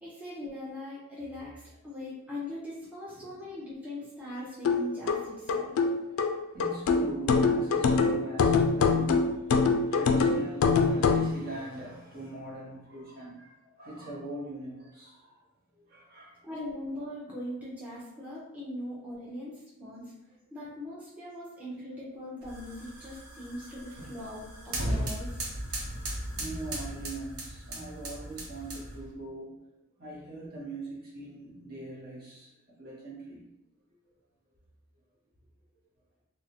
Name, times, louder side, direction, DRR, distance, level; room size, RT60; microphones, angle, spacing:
voice 1, 0.0-5.7 16.4-20.1 20.5-25.5, left 1 dB, 5° right, -9 dB, 0.7 m, -40 dB
sound 1, 4.6-11.3, left 4 dB, 65° left, 0.3 m, -24 dB
voice 2, 6.2-15.4 15.8-16.4 26.3-29.5 30.0-32.5 32.8-33.4, right 2 dB, 45° right, -4 dB, 0.9 m, -41 dB
sound 2, 22.4-29.1, right 1 dB, 80° right, 0.8 m, -37 dB
3.7 x 2.1 x 2.9 m, 0.85 s
head